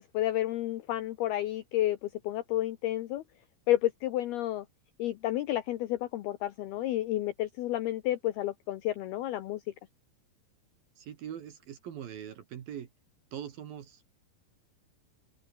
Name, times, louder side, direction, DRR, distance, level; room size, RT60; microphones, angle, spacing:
voice 1, 0.0-3.2 3.7-4.7 5.0-9.6, left 14 dB, 80° left, 2.3 m, -31 dB
voice 2, 11.0-12.9 13.3-14.0, right 9 dB, 60° right, 3.0 m, -42 dB
omnidirectional pair, 5.8 m